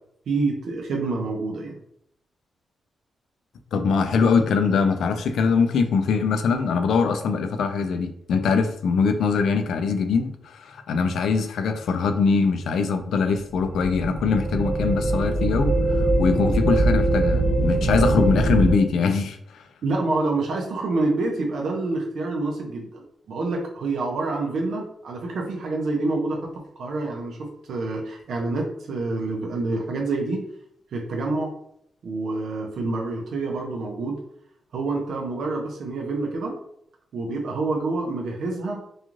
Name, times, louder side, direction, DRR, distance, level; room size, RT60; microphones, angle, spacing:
voice 1, 0.3-1.8 19.8-26.5 26.8-30.5 30.9-31.5 32.0-34.2 34.7-36.6 37.1-38.9, right 3 dB, 65° right, 0 dB, 0.5 m, -27 dB
voice 2, 3.7-19.7, left 5 dB, 80° left, 7 dB, 0.3 m, -22 dB
sound 1, 13.5-18.7, right 2 dB, 5° right, 0.7 m, -22 dB
3.0 x 2.3 x 2.4 m, 0.73 s
wide cardioid pair, 175°, 0 cm